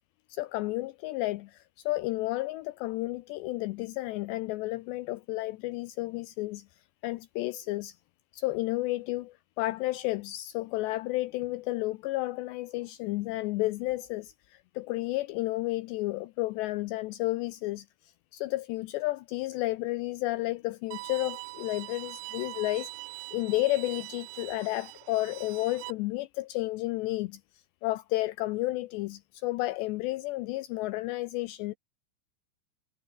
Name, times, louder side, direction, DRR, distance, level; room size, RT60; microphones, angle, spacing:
voice 1, 0.3-6.7 7.0-8.0 8.3-22.9 23.3-31.8, left 19 dB, 90° left, 2.5 m, -32 dB
Bowed string instrument, 20.9-25.9, right 22 dB, 85° right, 3.1 m, -42 dB
omnidirectional pair, 5.6 m